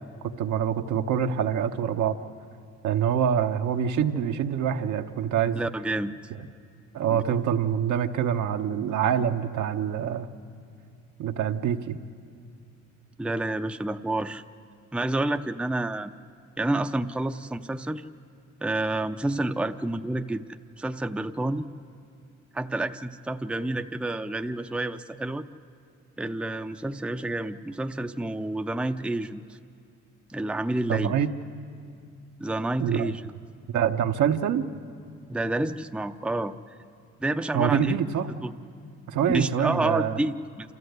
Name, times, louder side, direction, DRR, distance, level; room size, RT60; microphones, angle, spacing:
voice 1, 0.4-2.2 2.8-5.6 6.9-10.3 11.2-12.0 30.9-31.3 32.8-33.1 33.7-34.7 37.5-38.3 39.1-40.2, right 8 dB, 75° right, 6 dB, 1.0 m, -25 dB
voice 2, 5.5-6.2 7.1-7.2 13.2-14.4 14.9-16.1 16.6-18.0 18.6-21.7 22.5-25.4 26.2-29.4 30.3-31.2 32.4-33.3 35.3-36.5 37.2-38.0 38.4-38.5 39.3-40.7, right 2 dB, 5° right, 7 dB, 0.6 m, -29 dB
27.5 x 14.0 x 8.0 m, 2.3 s
cardioid pair, 90°, 30 cm